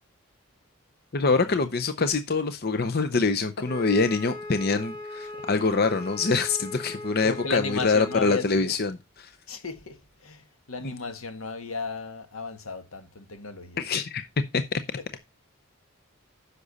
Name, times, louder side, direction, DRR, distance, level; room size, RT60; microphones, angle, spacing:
voice 1, 1.1-9.3 10.8-10.9 13.8-14.2 14.5-14.8, left 4 dB, 45° left, 0.6 m, -25 dB
Wind instrument woodwind instrument, 3.6-8.4, left 2 dB, 25° left, 1.7 m, -39 dB
voice 2, 7.2-8.8 9.5-13.8 15.0-15.2, left 4 dB, 80° left, 1.5 m, -35 dB
9.9 x 6.7 x 4.0 m
head